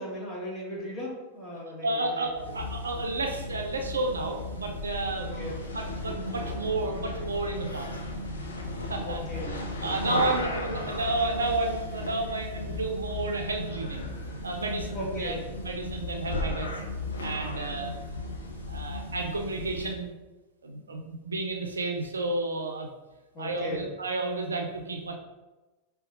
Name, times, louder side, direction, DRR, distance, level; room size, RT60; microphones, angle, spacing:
voice 1, 0.0-2.6 5.2-5.6 9.0-10.9 14.9-15.5 23.3-23.9, equal, 20° left, -5 dB, 1.2 m, -38 dB
voice 2, 1.8-5.3 5.7-7.9 8.9-9.2 9.5-14.1 14.4-16.7 17.2-17.9 18.7-20.1 20.6-22.9 23.4-25.1, right 2 dB, 75° right, 3 dB, 0.4 m, -31 dB
sound 1, 2.3-20.0, left 2 dB, 70° left, 0.5 m, -35 dB
5.1 x 2.2 x 2.5 m, 1.1 s
figure-of-eight pair, 90°, 0 cm